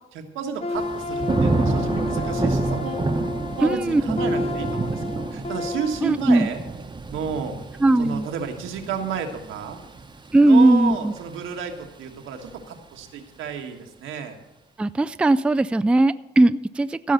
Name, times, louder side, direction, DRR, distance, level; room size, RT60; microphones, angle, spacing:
voice 1, 0.1-3.1 3.6-6.6 7.1-7.6 8.0-9.8 10.4-14.4, right 6 dB, 90° right, 4 dB, 1.5 m, -31 dB
sound 1, 0.6-6.0, left 2 dB, 30° left, 0.7 m, -30 dB
Thunder / Rain, 0.7-11.7 12.1-12.6, right 3 dB, 20° right, 0.9 m, -29 dB
voice 2, 3.6-4.2 6.0-6.5 7.8-8.3 10.3-11.1 14.8-17.1, right 2 dB, 5° right, 13 dB, 0.3 m, -18 dB
15.5 x 5.6 x 6.6 m, 0.98 s
cardioid pair, 90°, 20 cm